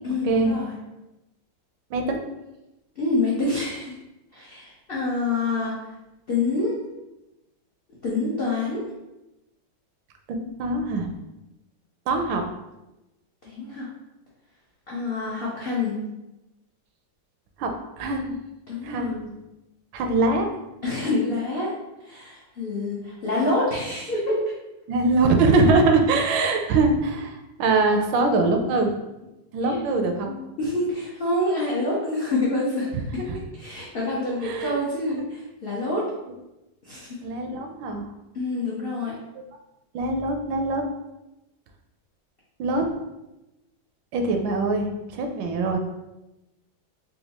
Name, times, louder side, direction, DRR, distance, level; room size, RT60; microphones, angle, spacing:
voice 1, 0.0-0.7 3.0-3.9 4.3-5.8 6.3-6.8 8.0-8.8 13.4-13.9 14.9-15.9 18.7-19.2 20.8-21.7 22.0-24.5 29.6-29.8 30.2-33.2 33.6-36.0 36.8-37.2 38.3-39.1, left 2 dB, 90° left, -6 dB, 0.5 m, -27 dB
voice 2, 1.9-2.2 10.3-11.1 12.1-12.4 17.6-17.7 18.0-18.4 18.8-19.3 19.9-20.5 24.9-28.9 29.5-30.3 33.3-33.4 34.4-34.8 37.2-38.1 39.9-40.8 42.6-42.8 44.1-45.8, right 3 dB, 85° right, 4 dB, 1.3 m, -22 dB
4.2 x 2.3 x 2.8 m, 0.96 s
omnidirectional pair, 2.0 m